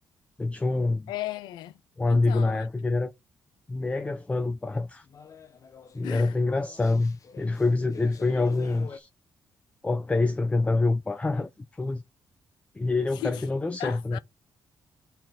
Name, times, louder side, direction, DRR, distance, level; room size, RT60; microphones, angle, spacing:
voice 1, 0.4-1.1 2.0-3.1 3.7-5.0 5.9-9.1 9.8-11.5 11.8-12.0 12.8-14.2, left 3 dB, 20° left, 0.6 m, -26 dB
voice 2, 1.1-1.8 2.1-2.7 6.0-6.4 13.1-13.5 13.8-14.2, left 14 dB, 90° left, 0.5 m, -36 dB
sound 1, 4.8-9.0, left 5 dB, 50° left, 1.0 m, -47 dB
5.8 x 4.4 x 5.1 m
cardioid pair, 75°, 7 cm